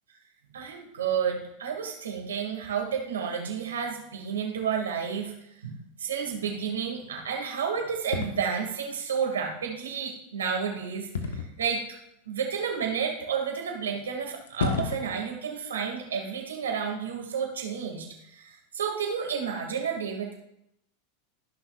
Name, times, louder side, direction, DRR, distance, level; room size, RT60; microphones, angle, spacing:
voice 1, 0.5-5.3 5.6-11.8 12.3-20.3, right 7 dB, 90° right, 2 dB, 2.2 m, -31 dB
sound 1, 8.1-8.4 11.1-11.7 12.6-12.7 14.1-14.2 14.5-15.2, left 5 dB, 85° left, 1.3 m, -30 dB
15.5 x 6.3 x 2.5 m, 0.78 s
hypercardioid pair, 105°, 0 cm